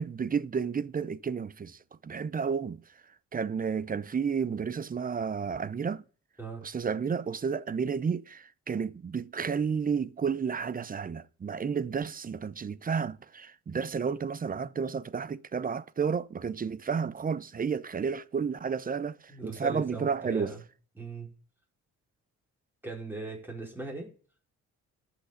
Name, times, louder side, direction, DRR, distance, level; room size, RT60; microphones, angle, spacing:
voice 1, 0.0-2.8 3.3-6.0 6.6-19.2 19.4-20.5, right 6 dB, 30° right, 0.6 m, -31 dB
voice 2, 6.4-6.7 19.3-20.6 21.0-21.3 22.8-24.1, right 3 dB, 5° right, 4.8 m, -39 dB
12.0 x 5.9 x 8.4 m
cardioid pair, 90°, 30 cm